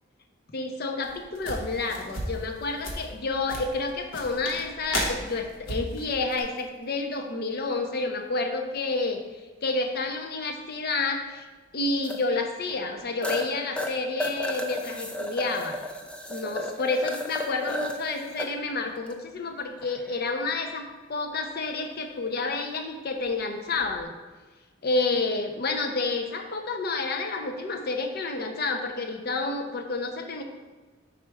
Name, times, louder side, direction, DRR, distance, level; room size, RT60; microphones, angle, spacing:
voice 1, 0.5-9.2 9.6-11.5 11.7-15.8 16.3-24.1 24.8-30.4, left 3 dB, 50° left, 5 dB, 0.6 m, -29 dB
sound 1, 1.0-6.4, equal, 85° left, 1.1 m, -34 dB
sound 2, 6.3-6.4 8.9-9.0 12.0-12.2 12.7-12.8 13.2-13.5 13.8-18.5 19.0-19.1 19.8-20.2 23.8-24.0, left 1 dB, 5° left, 0.4 m, -33 dB
4.9 x 4.4 x 4.7 m, 1.3 s
head